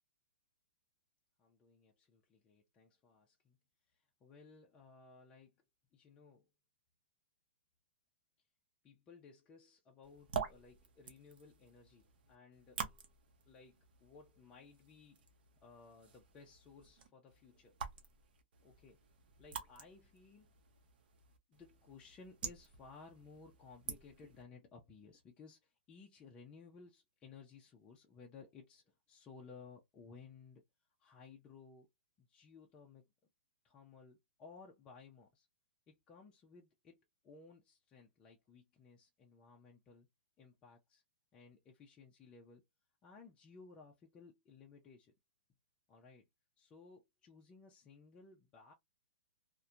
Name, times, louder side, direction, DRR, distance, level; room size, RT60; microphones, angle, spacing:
voice 1, 1.4-3.6 3.9-5.6 5.9-6.5 8.8-12.9 13.5-15.3 15.6-17.8 18.6-19.0 19.4-20.5 21.5-30.6 31.0-31.9 32.2-33.0 33.6-35.5 35.9-40.1 40.4-41.0 41.3-42.6 43.0-45.2 45.9-46.2 46.6-48.7, left 4 dB, 15° left, 0.4 m, -59 dB
sound 1, 10.0-24.4, right 7 dB, 55° right, 0.7 m, -49 dB
2.7 x 2.1 x 2.3 m
hypercardioid pair, 160°, 6 cm